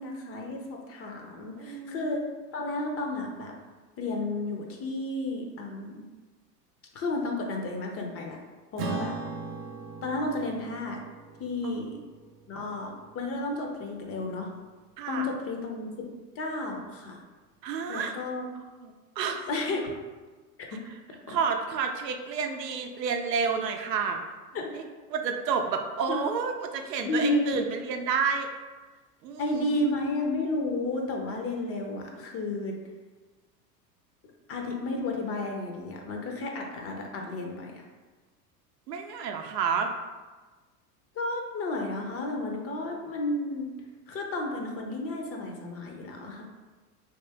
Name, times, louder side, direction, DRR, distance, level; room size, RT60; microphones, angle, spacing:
voice 1, 0.0-2.2 2.5-3.6 4.0-6.0 6.9-8.4 8.7-9.2 10.0-11.0 11.4-12.0 12.5-14.5 15.1-16.1 16.3-17.2 17.9-18.5 19.5-19.9 20.7-20.8 21.3-21.4 24.5-24.7 26.1-26.2 27.0-27.5 29.4-32.8 34.5-37.8 41.2-43.7 44.1-46.5, left 2 dB, 30° left, 2 dB, 0.5 m, -32 dB
voice 2, 1.6-2.2 11.6-11.8 15.0-15.3 17.6-18.2 18.8-19.5 21.3-24.2 24.7-24.8 25.1-28.5 29.2-29.8 38.9-39.9, right 6 dB, 85° right, 4 dB, 0.6 m, -30 dB
Acoustic guitar / Strum, 8.8-13.5, right 4 dB, 30° right, 0.5 m, -39 dB
2.9 x 2.8 x 3.3 m, 1.3 s
hypercardioid pair, 90°, 48 cm